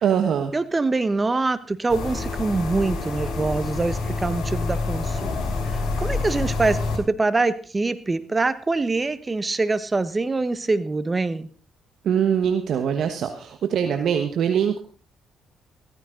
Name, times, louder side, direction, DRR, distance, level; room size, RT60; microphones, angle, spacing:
voice 1, 0.0-0.5 12.0-14.8, right 8 dB, 70° right, 6 dB, 1.3 m, -22 dB
voice 2, 0.5-5.4 5.7-11.5, right 3 dB, 25° right, 14 dB, 1.2 m, -24 dB
sound 1, 1.9-7.0, left 3 dB, 70° left, 5.1 m, -27 dB
15.0 x 14.0 x 3.9 m, 0.38 s
cardioid pair, 90°, 0 cm